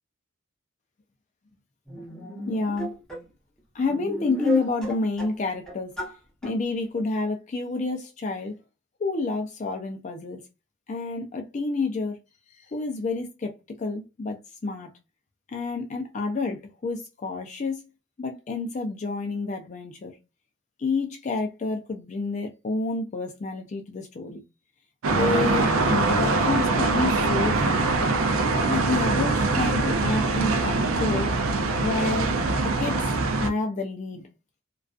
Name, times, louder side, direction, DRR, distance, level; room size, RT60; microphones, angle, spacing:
sound 1, 1.9-3.2 3.9-5.4 5.7-6.2 6.4-6.5, right 1 dB, 5° left, 0.7 m, -33 dB
voice 1, 2.5-2.9 3.7-5.9 6.4-8.6 9.0-10.4 10.9-12.2 12.6-14.9 15.5-17.8 18.2-20.2 20.8-24.4 25.1-28.1 28.7-31.3 31.8-33.1 33.4-34.3, left 3 dB, 35° left, 0.4 m, -29 dB
sound 2, 25.0-33.5, right 3 dB, 85° right, 0.4 m, -23 dB
2.4 x 2.3 x 2.3 m
head